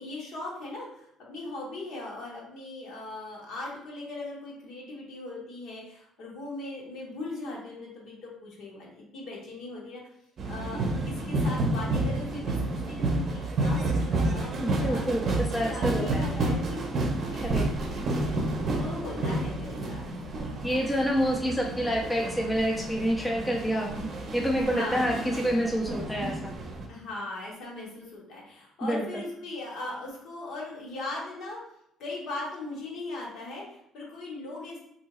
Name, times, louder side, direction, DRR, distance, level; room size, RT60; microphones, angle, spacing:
voice 1, 0.0-10.0 10.5-15.0 15.6-16.9 17.3-17.8 18.1-20.0 20.3-20.5 24.6-25.2 26.9-31.6 32.0-34.8, left 2 dB, 65° left, -3 dB, 1.3 m, -39 dB
sound 1, 10.4-26.9, right 2 dB, 45° right, 0.7 m, -30 dB
voice 2, 14.6-16.2 17.4-17.7 20.6-24.1 24.3-26.5 28.8-29.0, equal, 10° left, -1 dB, 0.5 m, -28 dB
3.5 x 2.7 x 3.0 m, 0.74 s
cardioid pair, 115°, 0 cm